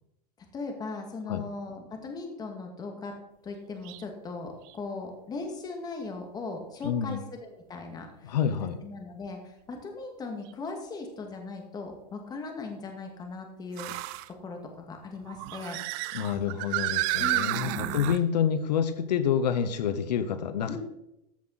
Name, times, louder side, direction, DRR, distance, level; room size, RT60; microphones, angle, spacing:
voice 1, 0.4-3.1 3.4-13.9 14.4-15.8 17.2-18.0 20.7-20.8, left 3 dB, 20° left, 3 dB, 2.1 m, -39 dB
sound 1, 3.8-4.0 4.7-4.8 6.8-6.9 10.5-10.6 13.7-14.3 15.2-18.2, right 17 dB, 40° right, 0.5 m, -31 dB
voice 2, 6.8-7.2 8.2-8.8 16.1-20.8, left 8 dB, 85° left, 11 dB, 1.0 m, -28 dB
14.0 x 7.6 x 4.1 m, 0.86 s
supercardioid pair, 140°, 21 cm